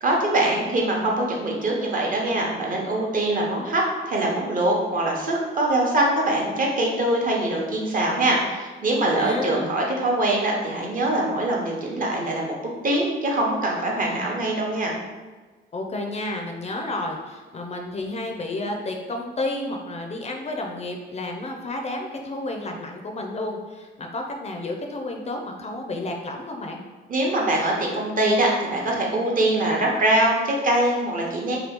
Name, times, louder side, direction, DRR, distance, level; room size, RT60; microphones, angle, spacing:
voice 1, 0.0-12.5 12.8-15.0 27.1-31.6, right 1 dB, 45° right, -2 dB, 0.8 m, -23 dB
voice 2, 9.1-9.7 15.7-26.8, left 2 dB, 35° left, 2 dB, 0.4 m, -31 dB
2.9 x 2.3 x 3.5 m, 1.3 s
cardioid pair, 90°, 20 cm